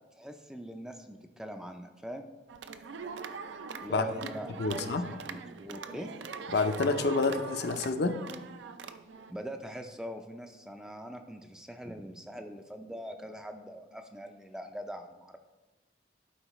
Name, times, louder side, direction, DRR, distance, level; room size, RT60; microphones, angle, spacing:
voice 1, 0.2-2.3 3.8-6.1 9.3-15.4, equal, 5° right, 5 dB, 0.3 m, -42 dB
sound 1, 2.5-9.3, right 5 dB, 80° right, 0.4 m, -42 dB
voice 2, 4.6-5.1 6.5-8.2, left 3 dB, 60° left, 8 dB, 0.5 m, -28 dB
11.5 x 4.9 x 3.0 m, 1.1 s
head